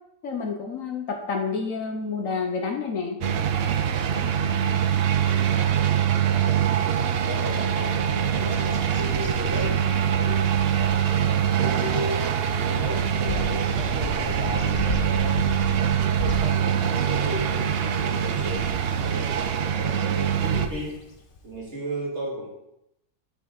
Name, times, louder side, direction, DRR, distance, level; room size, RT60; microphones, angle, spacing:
voice 1, 0.2-3.2, left 5 dB, 60° left, 3 dB, 1.2 m, -29 dB
sound 1, 3.2-20.7, right 9 dB, 70° right, 0.5 m, -24 dB
voice 2, 5.2-6.6 7.2-12.4 12.7-18.7 19.0-21.0 21.4-22.5, equal, 45° right, -5 dB, 2.8 m, -35 dB
Bird vocalization bird call bird song, 8.3-21.6, left 2 dB, 40° left, 1.0 m, -37 dB
10.5 x 5.6 x 3.9 m, 0.84 s
omnidirectional pair, 1.7 m